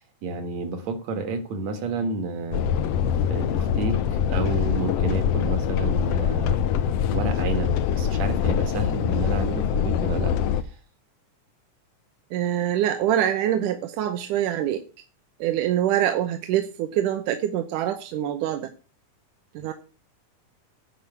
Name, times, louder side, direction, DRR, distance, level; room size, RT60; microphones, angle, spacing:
voice 1, 0.2-2.6 3.3-6.6 7.1-10.3, right 3 dB, 60° right, 8 dB, 2.8 m, -30 dB
sound 1, 2.5-10.6, left 8 dB, 75° left, 1.4 m, -24 dB
voice 2, 12.3-14.8 15.4-18.7 19.6-19.7, right 11 dB, 80° right, 8 dB, 2.4 m, -25 dB
9.7 x 6.1 x 8.1 m, 0.36 s
omnidirectional pair, 3.7 m